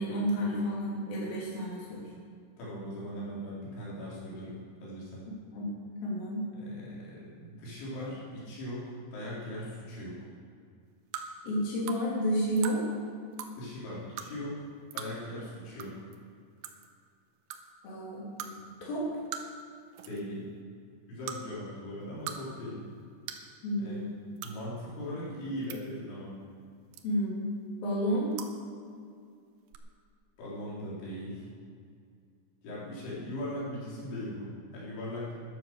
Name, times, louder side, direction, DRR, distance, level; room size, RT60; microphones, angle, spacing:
voice 1, 0.0-2.1 5.5-5.7 6.0-6.5 11.4-12.9 17.8-19.1 23.6-24.1 27.0-27.5 27.8-28.4, equal, 55° left, -6 dB, 4.7 m, -31 dB
voice 2, 2.6-5.3 6.6-10.2 13.6-14.5 14.9-15.9 20.1-20.5 21.1-22.8 23.8-24.1 24.4-26.3 30.4-31.5 32.6-35.3, left 1 dB, 80° left, -8 dB, 6.6 m, -39 dB
sound 1, 11.1-11.3 11.9-12.0 12.6-12.8 13.3-13.5 14.2-14.3 14.9-15.1 15.8-16.2 16.6-16.9 17.5-17.6 18.4-18.5 19.3-19.6 19.9-20.2 21.2-21.4 22.0-22.4 22.7-22.8 23.3-23.5 24.4-24.5 25.4-25.8 26.9-27.3 28.3-28.5 29.7-29.8, right 10 dB, 75° right, 2.9 m, -39 dB
13.0 x 11.5 x 6.8 m, 2.2 s
omnidirectional pair, 5.3 m